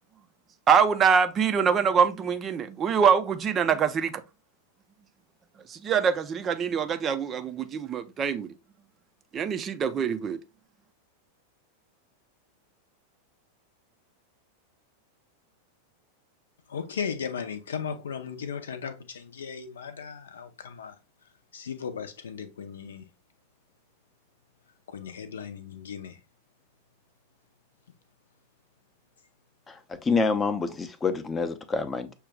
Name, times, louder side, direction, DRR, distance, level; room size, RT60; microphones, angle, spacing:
voice 1, 0.7-4.1 5.7-8.5 9.3-10.4, right 6 dB, 25° right, 0.5 m, -24 dB
voice 2, 16.7-20.9 21.5-23.0 24.9-26.2, left 6 dB, 65° left, 0.6 m, -36 dB
voice 3, 29.7-32.1, left 4 dB, 15° left, 0.6 m, -27 dB
6.5 x 2.3 x 3.5 m
figure-of-eight pair, 90°, 0 cm